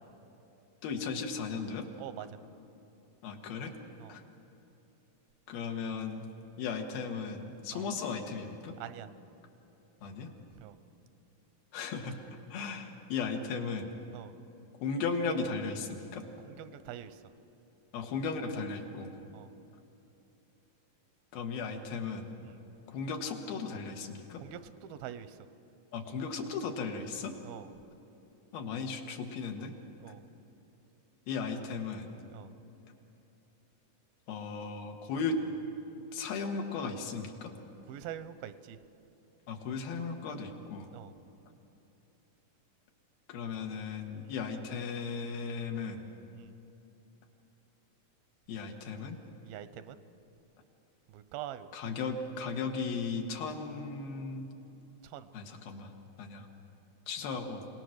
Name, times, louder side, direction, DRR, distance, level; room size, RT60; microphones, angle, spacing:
voice 1, 0.8-1.9 3.2-3.7 4.1-4.2 5.5-6.3 6.6-8.8 10.0-10.3 11.7-12.2 12.5-13.9 14.8-16.2 17.9-19.1 21.3-22.3 22.9-24.4 25.9-27.4 28.5-29.7 31.3-32.1 34.3-35.4 36.1-37.5 39.5-40.9 43.3-46.1 48.5-49.2 51.7-54.5 55.3-55.9 56.2-56.5 57.1-57.6, left 5 dB, 90° left, 3 dB, 3.4 m, -36 dB
voice 2, 8.8-9.1 10.6-10.8 14.1-14.3 16.4-17.2 19.3-19.5 22.5-22.6 24.4-25.3 27.4-27.7 30.0-30.2 32.3-32.5 37.9-38.8 40.9-41.1 44.2-44.3 46.4-46.5 49.4-50.0 51.1-51.7 55.1-55.3, right 11 dB, 85° right, 12 dB, 2.6 m, -44 dB
28.0 x 18.0 x 6.5 m, 3.0 s
omnidirectional pair, 4.2 m